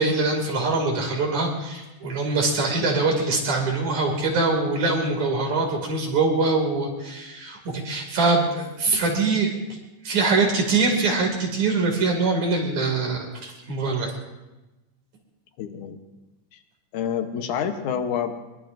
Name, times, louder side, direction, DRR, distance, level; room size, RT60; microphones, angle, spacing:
voice 1, 0.0-9.5 10.0-14.1, right 3 dB, 55° right, 0 dB, 3.9 m, -23 dB
voice 2, 15.6-16.0 16.5-16.6 16.9-18.4, left 8 dB, 70° left, 7 dB, 2.4 m, -28 dB
23.0 x 22.5 x 2.6 m, 1.0 s
omnidirectional pair, 3.9 m